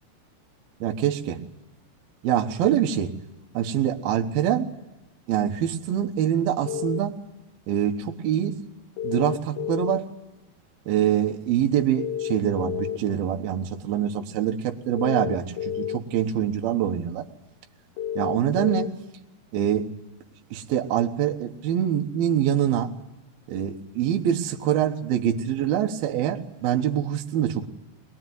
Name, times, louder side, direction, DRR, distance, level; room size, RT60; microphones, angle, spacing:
voice 1, 0.8-1.4 2.2-3.1 3.5-4.7 5.3-7.2 7.7-8.6 9.0-10.1 10.9-17.3 18.2-18.9 19.5-19.9 20.5-22.9 23.5-27.7, right 10 dB, 70° right, 3 dB, 2.9 m, -25 dB
sound 1, 6.7-7.0 9.0-10.0 12.0-13.0 15.0-16.0 18.0-18.9, left 10 dB, 65° left, 2.6 m, -30 dB
22.0 x 21.5 x 9.2 m, 0.99 s
omnidirectional pair, 4.9 m